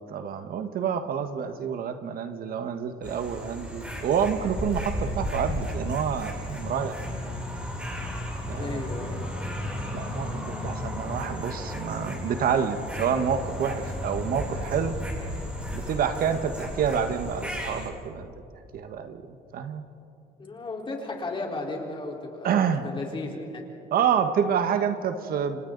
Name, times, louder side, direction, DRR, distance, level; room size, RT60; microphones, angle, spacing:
voice 1, 0.0-7.2 8.5-8.9 9.9-15.0 15.7-19.8 22.4-22.8 23.9-25.6, right 7 dB, 60° right, 8 dB, 1.3 m, -28 dB
sound 1, 3.0-17.9, left 1 dB, 5° right, 6.7 m, -34 dB
voice 2, 8.5-9.2 20.4-23.6, left 2 dB, 30° left, 0 dB, 4.2 m, -35 dB
29.5 x 26.0 x 4.0 m, 2.8 s
cardioid pair, 110°, 17 cm